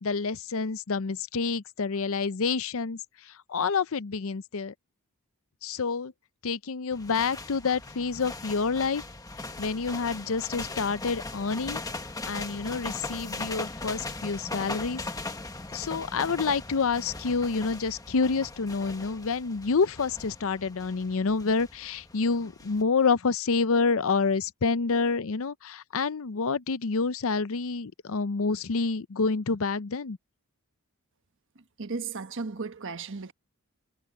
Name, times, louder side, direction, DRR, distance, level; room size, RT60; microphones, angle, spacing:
voice 1, 0.0-3.0 3.3-4.7 5.6-6.1 6.4-9.0 9.6-11.8 12.3-15.0 15.7-30.2, left 4 dB, 65° left, 0.6 m, -28 dB
sound 1, 6.9-22.8, left 2 dB, 15° left, 1.4 m, -39 dB
voice 2, 31.5-33.3, right 4 dB, 55° right, 1.3 m, -35 dB
head